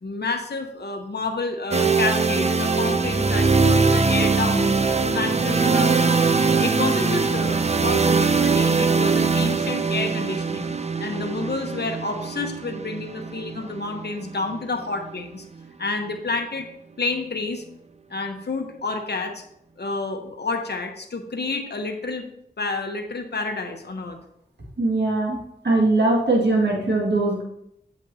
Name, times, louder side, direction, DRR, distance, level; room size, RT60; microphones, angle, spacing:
voice 1, 0.0-10.7 11.0-15.4 15.8-16.7 17.0-17.6 18.1-19.4 19.8-22.3 22.6-24.2, left 3 dB, 70° left, 4 dB, 1.0 m, -29 dB
sound 1, 1.7-15.6, right 4 dB, 40° right, 0.5 m, -22 dB
voice 2, 24.8-27.4, right 2 dB, 85° right, -2 dB, 1.9 m, -21 dB
8.4 x 7.2 x 2.8 m, 0.76 s
wide cardioid pair, 50°, 17 cm